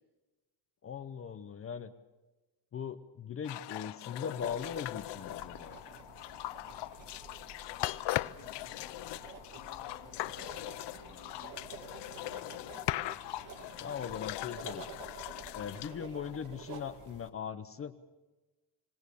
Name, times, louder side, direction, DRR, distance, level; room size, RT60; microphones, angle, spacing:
voice 1, 0.8-1.9 2.7-5.8 13.8-14.8 15.5-18.0, left 7 dB, 35° left, 10 dB, 0.8 m, -40 dB
sound 1, 3.4-17.0, left 16 dB, 85° left, 0.7 m, -40 dB
sound 2, 4.4-17.3, right 5 dB, 50° right, 2.0 m, -51 dB
voice 2, 7.6-12.5, left 6 dB, 65° left, 3 dB, 3.6 m, -56 dB
sound 3, 9.7-15.7, right 5 dB, 70° right, 4.5 m, -62 dB
26.0 x 19.0 x 6.9 m, 1.2 s
cardioid pair, 170°, 40 cm